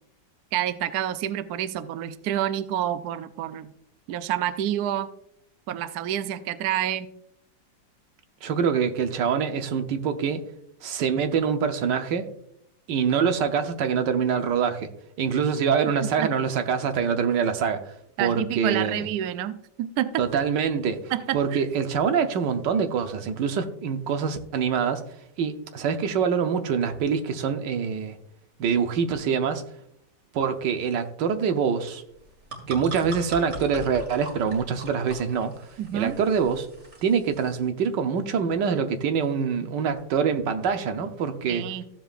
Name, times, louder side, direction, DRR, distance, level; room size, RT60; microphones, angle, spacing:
voice 1, 0.5-3.7 4.1-5.1 5.7-7.1 16.2-16.3 18.2-20.3 21.1-21.6 35.8-36.2 41.5-41.8, right 11 dB, 70° right, 11 dB, 1.0 m, -28 dB
voice 2, 8.4-10.4 10.8-12.3 12.9-14.9 15.2-17.8 18.2-19.1 20.2-21.0 21.3-25.0 25.4-28.1 28.6-29.6 30.3-32.0 32.7-35.5 35.9-36.7 37.0-41.7, right 6 dB, 85° right, 7 dB, 1.5 m, -25 dB
sound 1, 32.1-37.6, right 1 dB, 50° right, 2.5 m, -41 dB
15.0 x 7.5 x 2.5 m, 0.73 s
omnidirectional pair, 1.9 m